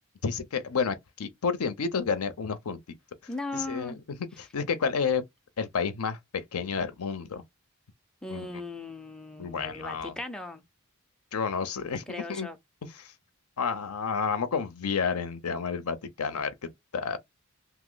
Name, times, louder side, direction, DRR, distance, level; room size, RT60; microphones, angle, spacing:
voice 1, 0.2-3.0 3.5-3.9 4.4-5.2 5.6-7.4 8.3-8.5 9.4-10.2 11.3-12.0 12.3-12.5 12.8-13.1 13.6-16.5 16.9-17.2, left 5 dB, 90° left, 0.6 m, -30 dB
voice 2, 3.3-4.0 8.2-10.6 12.1-12.6, left 2 dB, 5° left, 0.3 m, -38 dB
2.8 x 2.0 x 3.8 m
head